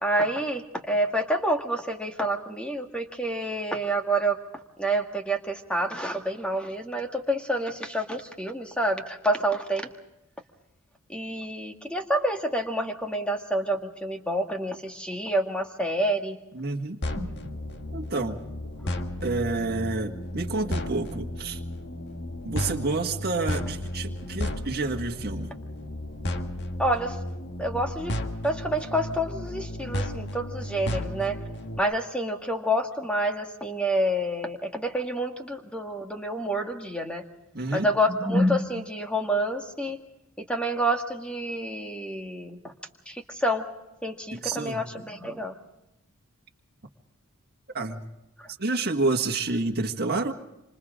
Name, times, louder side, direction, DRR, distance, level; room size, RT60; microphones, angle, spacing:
voice 1, 0.0-4.4 4.8-9.9 11.1-16.4 17.2-17.3 26.8-27.2 27.6-28.2 28.4-31.4 31.8-37.2 37.7-40.0 40.4-42.7 43.1-43.7 44.0-45.5 48.4-48.5, right 1 dB, 5° left, 4 dB, 1.8 m, -28 dB
voice 2, 16.5-17.0 17.9-18.4 19.2-21.6 22.4-25.5 37.5-37.9 44.3-44.8 47.7-48.0 48.6-50.3, right 3 dB, 45° right, 4 dB, 1.8 m, -29 dB
sound 1, 17.0-31.8, left 1 dB, 55° left, 1.6 m, -33 dB
27.0 x 26.0 x 3.8 m, 0.93 s
head